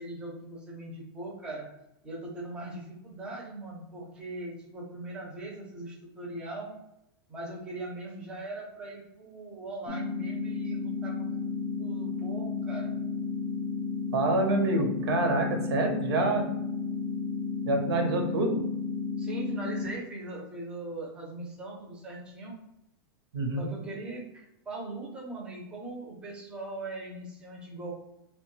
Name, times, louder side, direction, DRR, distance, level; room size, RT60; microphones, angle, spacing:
voice 1, 0.0-1.7 2.0-6.7 7.3-11.3 11.8-12.9 19.2-22.5 23.6-27.9, right 2 dB, 5° right, -3 dB, 0.5 m, -40 dB
sound 1, 9.9-19.9, left 4 dB, 45° left, 0.6 m, -33 dB
voice 2, 14.1-16.5 17.7-18.6 23.3-23.7, right 2 dB, 80° right, 3 dB, 0.8 m, -27 dB
3.0 x 2.2 x 3.0 m, 0.85 s
supercardioid pair, 175°, 13 cm